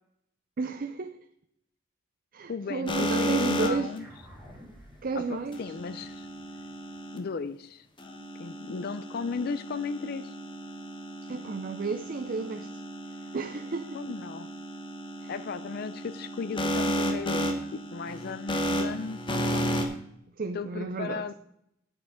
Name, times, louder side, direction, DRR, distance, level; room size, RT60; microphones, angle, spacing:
voice 1, 0.6-1.2 2.3-3.9 5.0-5.6 11.3-12.7 13.3-14.0 15.2-15.3 20.4-21.3, right 4 dB, 45° right, 9 dB, 0.5 m, -32 dB
voice 2, 2.5-4.1 5.1-6.3 7.1-7.9 8.4-10.4 13.9-14.5 15.3-19.2 19.5-19.6 20.5-21.3, left 5 dB, 50° left, 12 dB, 0.4 m, -36 dB
sound 1, 2.9-4.0 5.5-7.2 8.0-19.8, equal, 25° left, 1.2 m, -33 dB
sound 2, 4.0-8.7, equal, 10° right, 3.1 m, -54 dB
8.7 x 8.5 x 5.1 m, 0.74 s
head